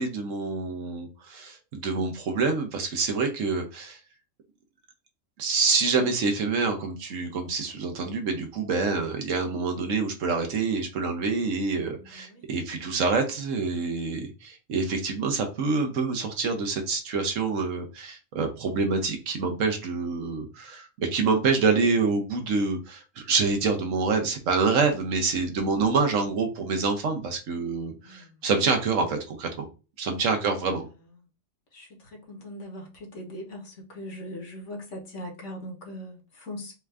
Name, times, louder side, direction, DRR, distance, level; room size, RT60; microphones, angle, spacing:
voice 1, 0.0-4.0 5.4-29.7 30.0-30.9, right 4 dB, 75° right, 1.2 m, -26 dB
voice 2, 12.0-12.4 27.9-28.4 30.4-30.8 31.7-36.7, left 1 dB, 65° left, 1.5 m, -41 dB
4.4 x 2.5 x 3.3 m
omnidirectional pair, 1.4 m